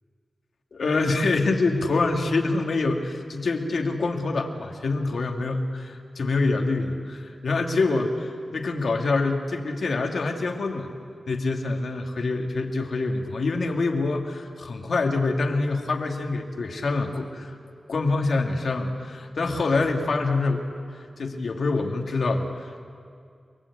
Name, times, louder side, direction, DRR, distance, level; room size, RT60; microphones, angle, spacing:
voice 1, 0.7-10.9 11.3-17.6 17.9-20.7 20.9-22.8, left 3 dB, 75° left, 2 dB, 2.2 m, -26 dB
29.0 x 20.5 x 8.4 m, 2.3 s
wide cardioid pair, 120°, 0 cm